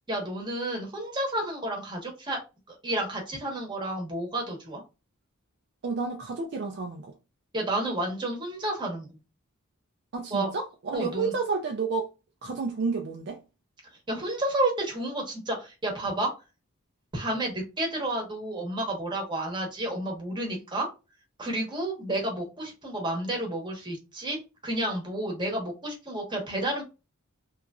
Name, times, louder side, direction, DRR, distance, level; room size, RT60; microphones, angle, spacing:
voice 1, 0.1-2.4 2.7-4.8 7.5-9.2 10.3-10.5 10.9-11.3 14.1-16.3 17.1-20.9 21.4-26.8, right 1 dB, 20° right, 1.0 m, -31 dB
voice 2, 5.8-7.1 10.1-12.1 12.4-13.4, right 4 dB, 55° right, 0.4 m, -30 dB
2.9 x 2.5 x 2.3 m
head